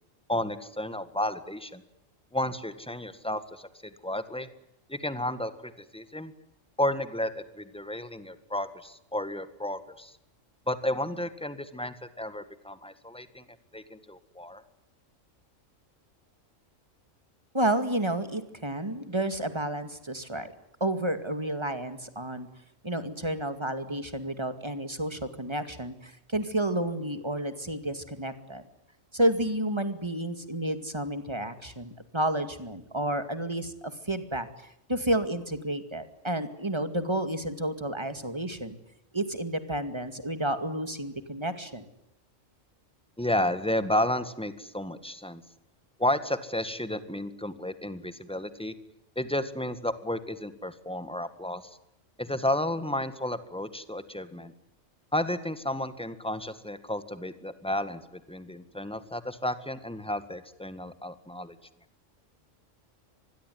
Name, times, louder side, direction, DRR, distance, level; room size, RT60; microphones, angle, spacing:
voice 1, 0.3-1.8 2.3-3.7 4.0-4.5 4.9-6.3 6.8-10.2 10.7-13.4 13.7-14.6 43.2-45.4 46.0-48.7 49.2-51.6 52.2-54.5 55.1-61.6, left 1 dB, 5° left, 12 dB, 1.7 m, -32 dB
voice 2, 17.5-20.5 20.8-22.5 22.8-28.6 29.1-34.5 34.9-38.8 39.1-41.8, right 1 dB, 20° right, 10 dB, 2.3 m, -30 dB
25.5 x 21.5 x 9.4 m, 0.82 s
omnidirectional pair, 1.3 m